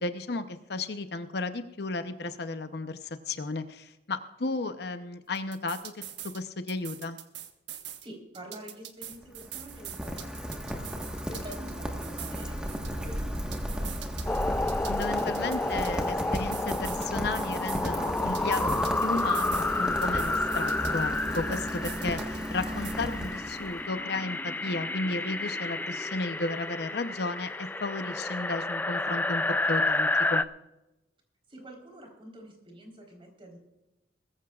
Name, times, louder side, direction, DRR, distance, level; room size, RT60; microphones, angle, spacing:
voice 1, 0.0-6.0 6.3-7.2 14.8-30.4, left 3 dB, 65° left, 9 dB, 0.8 m, -34 dB
sound 1, 5.3-6.4 6.7-8.1 8.3-11.7 12.0-14.4 14.7-17.1 17.3-19.7 20.0-22.4 22.7-22.9, right 11 dB, 80° right, 1.2 m, -43 dB
voice 2, 8.0-14.0 31.5-33.6, right 1 dB, 30° right, 0 dB, 3.9 m, -47 dB
Rain, 9.0-23.9, equal, 5° right, 1.4 m, -35 dB
sound 2, 14.3-30.4, left 2 dB, 10° left, 0.3 m, -30 dB
21.0 x 14.5 x 2.4 m, 0.98 s
head